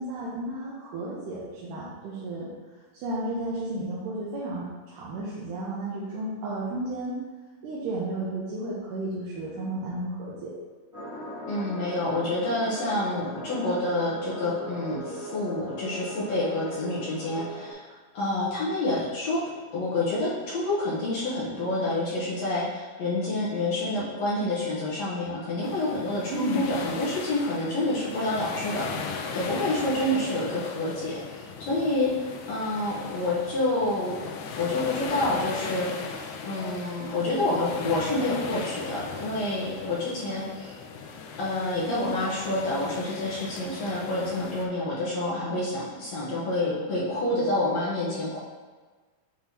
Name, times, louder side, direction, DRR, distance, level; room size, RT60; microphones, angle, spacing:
voice 1, 0.0-2.5 2.9-4.7 4.9-7.1 7.6-10.5 26.3-26.6, right 1 dB, 75° right, -7 dB, 2.4 m, -33 dB
sound 1, 10.9-17.7, left 1 dB, 40° right, 0.4 m, -39 dB
voice 2, 11.5-17.8 18.1-19.4 19.7-34.2 34.6-36.1 36.4-40.8 41.4-48.4, left 2 dB, 65° left, -8 dB, 1.9 m, -28 dB
sound 2, 25.6-44.7, left 5 dB, 80° left, 1.8 m, -38 dB
7.7 x 4.5 x 2.8 m, 1.4 s
omnidirectional pair, 3.9 m